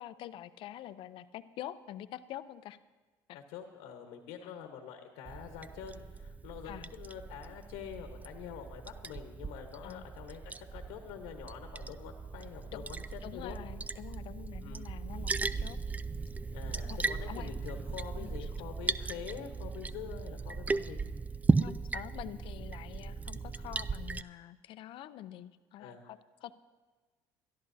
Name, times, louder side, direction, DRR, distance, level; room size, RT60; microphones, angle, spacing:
voice 1, 0.0-2.8 3.3-3.4 4.4-4.6 6.6-6.9 9.8-10.1 12.7-12.8 13.2-15.8 16.9-17.0 17.3-17.5 18.2-18.5 21.6-26.6, left 12 dB, 60° left, 13 dB, 0.6 m, -46 dB
voice 2, 3.3-13.6 14.6-14.8 16.5-21.0 25.8-26.0, left 8 dB, 80° left, 4 dB, 1.2 m, -46 dB
Liquid, 5.3-24.2, right 4 dB, 15° right, 0.3 m, -36 dB
22.0 x 12.5 x 2.7 m, 1.3 s
supercardioid pair, 85°, 10 cm